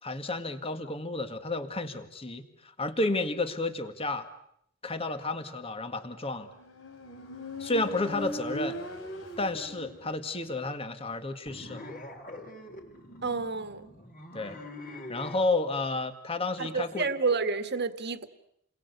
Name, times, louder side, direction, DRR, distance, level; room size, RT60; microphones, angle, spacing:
voice 1, 0.0-4.3 4.8-6.5 7.6-8.8 9.4-11.9 14.3-14.6 15.1-17.1, left 2 dB, 30° left, 8 dB, 2.0 m, -31 dB
Motorcycle, 6.6-10.2, left 1 dB, 75° left, 3.6 m, -39 dB
sound 1, 11.5-15.4, left 1 dB, 45° left, 4.7 m, -44 dB
voice 2, 13.2-13.9 16.6-18.3, right 4 dB, 55° right, 9 dB, 1.8 m, -29 dB
30.0 x 22.5 x 8.3 m, 0.73 s
head